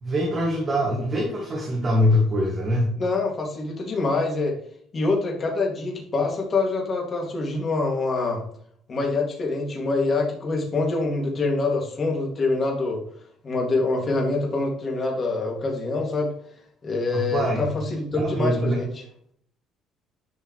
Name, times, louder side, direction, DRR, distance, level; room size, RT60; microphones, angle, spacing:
voice 1, 0.0-2.9 17.1-17.7 18.2-18.8, equal, 25° right, -2 dB, 2.1 m, -23 dB
voice 2, 3.0-4.5 4.9-8.4 8.9-13.0 13.4-16.3 16.8-18.9, left 3 dB, 30° left, -1 dB, 2.4 m, -25 dB
11.0 x 5.4 x 3.2 m, 0.63 s
cardioid pair, 155°, 0 cm